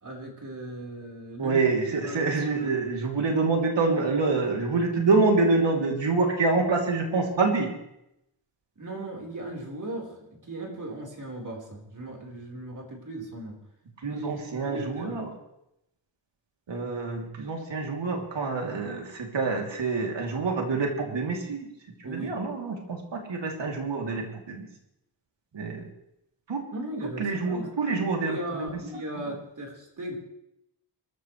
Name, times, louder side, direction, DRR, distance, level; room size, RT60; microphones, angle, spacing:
voice 1, 0.0-2.7 8.8-10.2 10.5-13.6 14.1-15.3 22.0-22.4 26.7-27.7 28.2-30.2, right 1 dB, 45° right, -1 dB, 4.4 m, -37 dB
voice 2, 1.4-7.7 14.0-15.3 16.7-21.7 22.1-24.7 25.5-25.8 26.5-26.6 27.2-28.7 29.2-29.3, right 3 dB, 75° right, 1 dB, 3.2 m, -26 dB
26.5 x 14.0 x 3.3 m, 0.81 s
wide cardioid pair, 135°, 44 cm